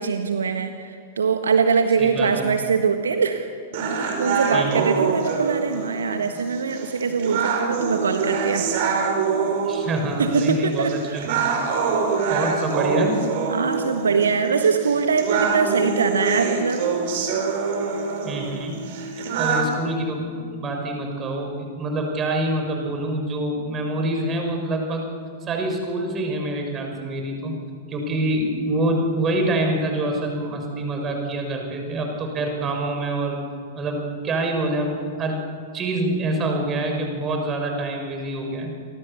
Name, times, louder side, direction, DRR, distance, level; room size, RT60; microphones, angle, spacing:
voice 1, 0.0-3.5 4.2-8.6 10.2-11.2 13.5-16.8 19.2-19.3, right 5 dB, 70° right, 7 dB, 1.5 m, -22 dB
voice 2, 2.0-2.4 4.5-4.9 9.7-11.5 12.3-13.2 18.2-18.8 19.3-25.1 25.4-27.5 27.9-33.4 33.7-35.4 35.7-38.7, right 1 dB, 25° right, 3 dB, 6.3 m, -26 dB
sound 1, 3.7-19.7, right 5 dB, 50° right, 5.2 m, -25 dB
29.5 x 24.5 x 7.0 m, 2.1 s
figure-of-eight pair, 100°, 0 cm